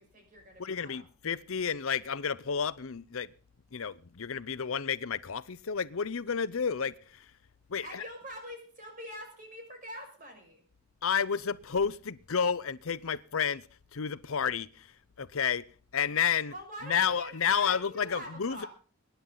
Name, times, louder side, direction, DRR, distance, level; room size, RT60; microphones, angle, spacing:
voice 1, 0.0-1.0 7.8-10.6 16.5-18.7, equal, 35° right, 5.9 m, -44 dB
voice 2, 0.6-3.3 3.7-7.3 7.7-8.0 11.0-15.7 15.9-16.5 16.8-18.6, left 7 dB, 70° left, 0.6 m, -31 dB
24.0 x 10.5 x 3.9 m
head